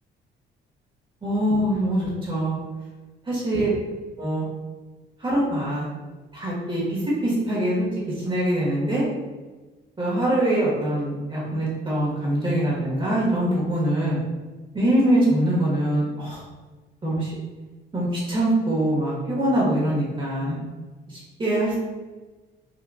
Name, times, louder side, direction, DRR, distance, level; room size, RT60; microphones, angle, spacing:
voice 1, 1.2-2.6 3.2-3.7 4.2-4.5 5.2-5.9 6.3-7.9 8.2-9.1 10.0-14.2 14.7-16.4 17.0-17.3 17.9-20.6 21.1-21.8, right 1 dB, 25° right, -6 dB, 1.3 m, -23 dB
3.8 x 2.5 x 2.4 m, 1.3 s
cardioid pair, 90°, 20 cm